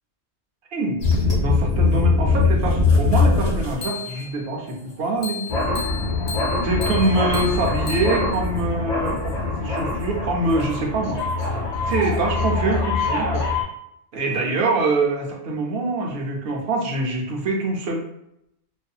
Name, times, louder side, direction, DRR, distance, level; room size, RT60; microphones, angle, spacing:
sound 1, 1.0-4.3 5.2-13.6, left 3 dB, 70° left, 1.1 m, -22 dB
voice 1, 1.4-5.5 6.6-11.2 11.9-13.5 14.1-18.0, right 2 dB, 65° right, -1 dB, 0.8 m, -24 dB
2.6 x 2.4 x 2.2 m, 0.78 s
omnidirectional pair, 1.2 m